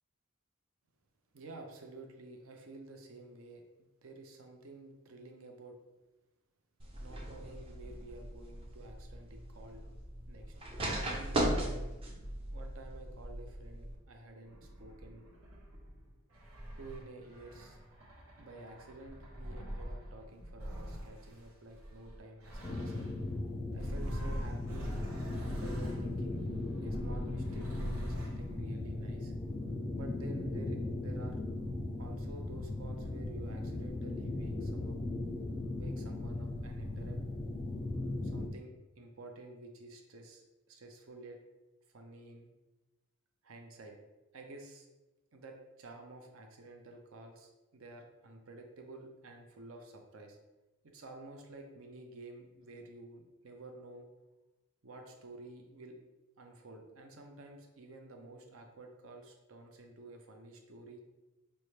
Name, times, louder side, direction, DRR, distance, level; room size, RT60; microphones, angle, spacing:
voice 1, 1.3-5.8 7.0-9.8 10.3-10.5 11.0-12.0 12.5-15.2 16.8-17.8 18.4-23.0 23.7-25.0 25.4-26.4 26.8-29.3 29.9-31.4 32.0-35.0 35.8-37.2 38.2-41.4 41.9-42.5 43.4-44.0 44.3-44.9 45.3-50.4 50.8-54.1 54.8-56.0 56.4-61.0, right 2 dB, 70° right, 3 dB, 0.7 m, -51 dB
sound 1, 6.8-14.0, right 1 dB, 25° right, 0.6 m, -38 dB
sound 2, 14.4-23.3 23.7-28.5, equal, 90° right, 1.0 m, -44 dB
sound 3, 22.6-38.5, left 2 dB, 25° left, 0.3 m, -38 dB
5.4 x 2.2 x 3.2 m, 1.1 s
head